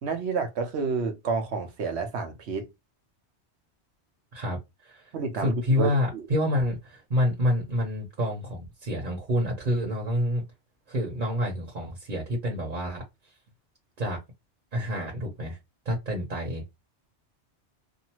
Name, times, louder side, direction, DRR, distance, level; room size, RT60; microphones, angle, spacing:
voice 1, 0.0-2.7 5.1-6.3, right 4 dB, 75° right, 1.0 m, -30 dB
voice 2, 4.3-5.1 5.4-10.4 10.9-13.0 14.0-14.2 14.7-15.6 15.8-16.6, left 1 dB, 50° right, 1.1 m, -28 dB
2.7 x 2.5 x 2.9 m
omnidirectional pair, 1.1 m